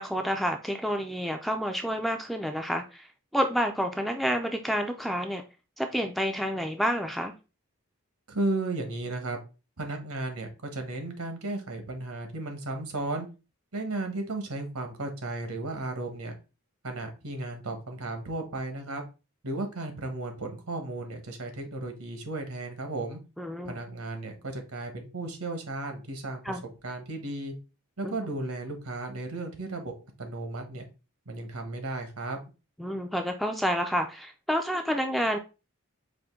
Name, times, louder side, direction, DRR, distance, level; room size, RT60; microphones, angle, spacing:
voice 1, 0.0-3.1 3.3-5.4 5.8-7.3 23.4-23.8 26.5-26.6 28.0-28.2 32.8-35.4, equal, ahead, 4 dB, 0.3 m, -29 dB
voice 2, 8.3-9.4 9.8-13.3 13.7-16.3 16.8-19.0 19.4-23.2 23.6-27.5 28.0-30.9 31.3-32.4, right 2 dB, 80° right, 5 dB, 1.1 m, -34 dB
5.0 x 2.6 x 3.6 m, 0.30 s
head